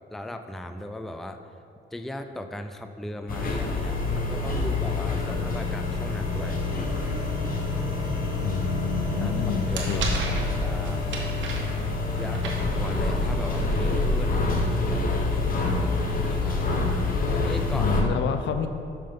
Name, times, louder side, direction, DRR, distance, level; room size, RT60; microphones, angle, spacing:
voice 1, 0.1-1.4 1.9-6.9 9.2-11.1 12.2-14.4 16.3-16.9 17.3-18.0, left 1 dB, ahead, 7 dB, 0.4 m, -37 dB
sound 1, 3.3-18.0, left 3 dB, 45° left, 1.1 m, -27 dB
sound 2, 5.8-13.8, right 4 dB, 85° right, 1.6 m, -40 dB
voice 2, 8.4-10.5 17.7-18.7, left 6 dB, 70° left, 8 dB, 0.6 m, -29 dB
sound 3, 9.3-13.3, right 2 dB, 70° right, 1.3 m, -33 dB
6.6 x 5.7 x 5.2 m, 2.5 s
cardioid pair, 90°, 20 cm